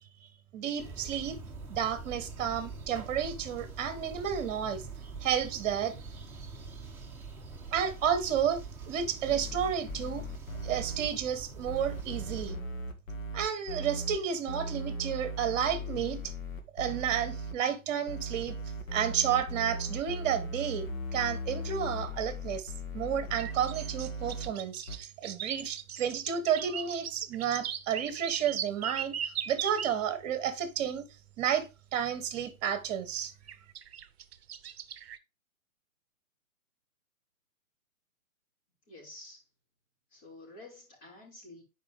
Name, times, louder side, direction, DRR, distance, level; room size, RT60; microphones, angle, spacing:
voice 1, 0.5-1.4 1.7-4.8 5.2-5.9 7.7-8.6 8.9-10.3 10.6-12.6 13.3-16.3 16.7-18.6 18.9-20.9 21.1-31.1 31.4-33.3, right 8 dB, 30° right, 1.2 m, -31 dB
sound 1, 0.8-12.5, right 4 dB, 5° right, 0.7 m, -44 dB
sound 2, 9.3-11.1 11.7-14.2 14.5-17.5 18.1-24.5 24.9-25.0, right 1 dB, 70° left, 1.9 m, -38 dB
sound 3, 23.4-29.9 31.6-31.7 33.5-35.2, right 9 dB, 50° right, 0.7 m, -38 dB
voice 2, 38.9-39.4 40.1-41.6, left 2 dB, 40° left, 4.4 m, -50 dB
10.0 x 4.8 x 3.5 m
hypercardioid pair, 135°, 42 cm